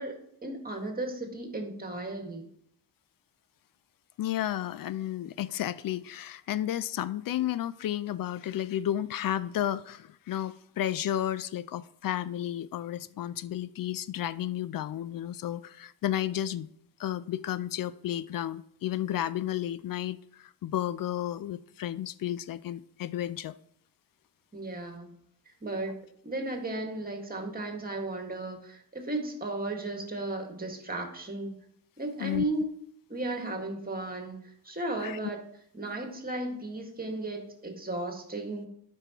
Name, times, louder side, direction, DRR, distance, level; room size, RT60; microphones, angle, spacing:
voice 1, 0.0-2.5 24.5-25.1 25.6-31.6 32.0-32.7 33.1-34.4 34.7-35.4 35.7-38.7, right 2 dB, 20° right, 1.8 m, -35 dB
voice 2, 4.2-16.7 17.0-23.6 32.2-32.4 35.0-35.2, left 12 dB, 60° left, 0.5 m, -32 dB
12.0 x 5.4 x 3.0 m
cardioid pair, 85°, 39 cm